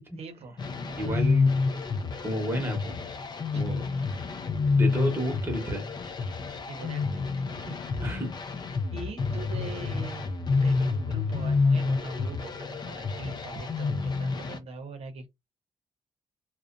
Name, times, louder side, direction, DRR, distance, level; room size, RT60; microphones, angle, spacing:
voice 1, 0.2-1.5 3.5-4.1 6.7-8.5 8.9-15.3, right 3 dB, 60° right, 0.7 m, -42 dB
sound 1, 0.6-14.6, left 4 dB, 40° left, 0.4 m, -28 dB
voice 2, 1.0-1.6 2.2-3.0 3.5-3.8 4.7-5.9 8.0-8.3, equal, 20° right, 0.9 m, -30 dB
2.4 x 2.1 x 2.4 m
cardioid pair, 135°, 12 cm